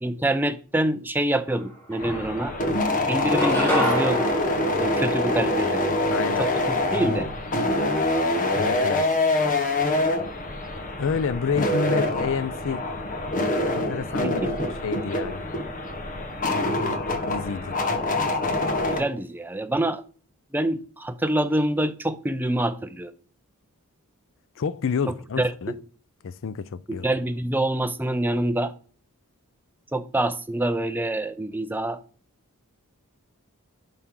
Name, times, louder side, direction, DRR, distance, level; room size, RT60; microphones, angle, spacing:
voice 1, 0.0-2.5 3.1-4.3 4.8-5.8 6.4-7.2 14.2-14.7 18.9-20.0 20.5-23.1 25.1-25.8 27.0-28.7 29.9-32.0, right 1 dB, 10° right, 0.5 m, -26 dB
sound 1, 1.5-1.6 1.9-2.7 3.1-5.7, left 1 dB, 10° left, 3.4 m, -28 dB
sound 2, 2.0-19.0, left 2 dB, 40° left, 1.2 m, -25 dB
voice 2, 6.1-6.5 8.5-9.2 11.0-12.8 13.7-14.5 14.8-15.5 17.3-17.8 24.6-25.7 26.2-27.1, left 5 dB, 65° left, 0.5 m, -29 dB
10.5 x 5.6 x 3.8 m
head